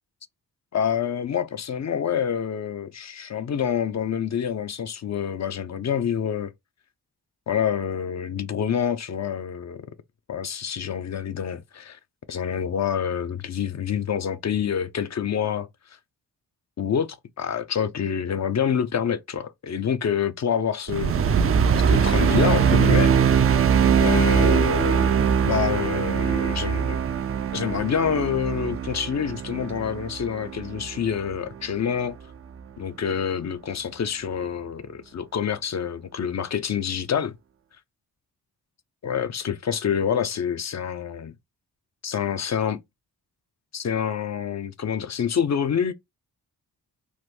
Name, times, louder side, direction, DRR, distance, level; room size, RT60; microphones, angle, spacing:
voice 1, 0.7-6.5 7.5-9.8 10.3-12.0 12.3-15.7 16.8-21.2 21.9-23.5 24.0-27.0 27.5-32.2 32.8-37.3 39.0-41.3 42.0-42.8 43.7-45.9, left 8 dB, 45° left, 0.5 m, -27 dB
sound 1, 20.9-31.4, right 7 dB, 35° right, 0.4 m, -22 dB
3.0 x 2.0 x 3.3 m
cardioid pair, 55°, 39 cm